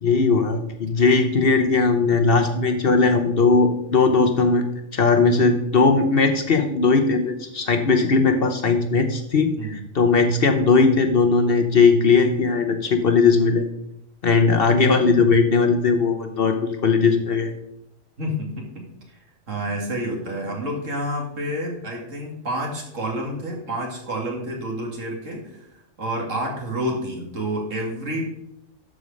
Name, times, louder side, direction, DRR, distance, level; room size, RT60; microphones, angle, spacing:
voice 1, 0.0-4.6 4.9-13.7 14.2-17.5, left 4 dB, 50° left, 6 dB, 1.0 m, -18 dB
voice 2, 18.2-19.2 19.5-28.2, right 1 dB, 70° right, 0 dB, 2.5 m, -29 dB
12.5 x 4.9 x 5.3 m, 0.81 s
omnidirectional pair, 1.4 m